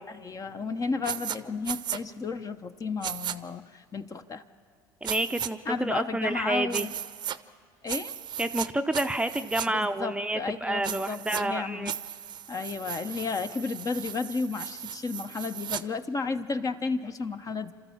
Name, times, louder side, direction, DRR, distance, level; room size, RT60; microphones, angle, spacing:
voice 1, 0.1-4.4 5.7-6.9 7.8-8.1 9.7-11.9 12.5-17.7, left 4 dB, 30° left, 9 dB, 1.0 m, -33 dB
sound 1, 1.0-1.4 1.6-2.0 3.0-3.4 5.0-5.5 6.7-7.4 7.9-8.7 8.9-9.7 10.8-11.4 11.9-15.8, right 10 dB, 45° right, 0.7 m, -35 dB
voice 2, 5.0-6.9 8.4-11.9, right 1 dB, 10° right, 8 dB, 0.7 m, -29 dB
28.0 x 13.0 x 7.2 m, 2.1 s
hypercardioid pair, 75°, 11 cm